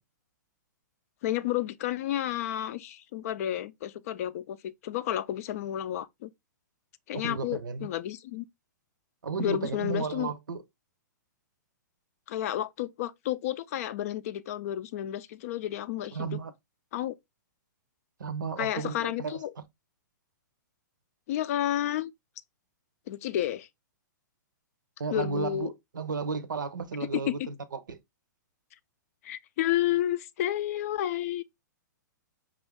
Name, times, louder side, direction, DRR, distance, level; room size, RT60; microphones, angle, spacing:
voice 1, 1.2-6.3 7.1-8.4 9.4-10.3 12.3-16.4 16.9-17.1 18.6-19.5 21.3-22.1 23.1-23.7 25.1-25.7 27.3-27.5 29.2-31.4, left 12 dB, 50° left, 0.4 m, -31 dB
voice 2, 7.1-7.9 9.2-10.6 16.1-16.5 18.2-19.6 25.0-28.0, right 5 dB, 85° right, 0.6 m, -34 dB
5.3 x 2.4 x 3.4 m
hypercardioid pair, 125°, 10 cm